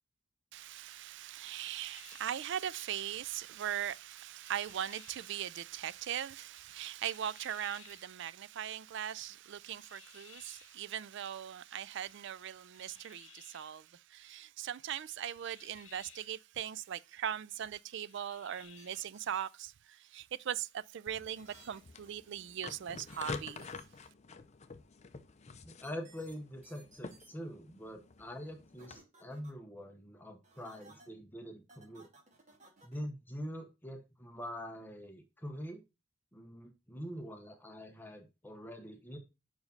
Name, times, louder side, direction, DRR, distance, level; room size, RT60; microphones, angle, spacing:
voice 1, 0.5-23.7, right 10 dB, 60° right, 0.4 m, -40 dB
sound 1, 1.5-2.5 4.4-5.4 7.1-8.2 9.8-10.8 12.7-13.8 15.4-16.4 18.0-19.1, left 9 dB, 70° left, 1.0 m, -59 dB
sound 2, 18.6-19.4 21.4-21.8 23.1-23.3 23.6-23.8 25.8-26.3 26.6-27.3 28.8-29.5 30.4-31.1 31.7-33.0, right 3 dB, 35° right, 2.1 m, -59 dB
sound 3, 21.1-29.0, left 4 dB, 35° left, 0.5 m, -48 dB
voice 2, 25.6-32.1 32.8-35.8 36.3-39.2, equal, 10° left, 0.9 m, -45 dB
5.4 x 5.0 x 5.2 m
head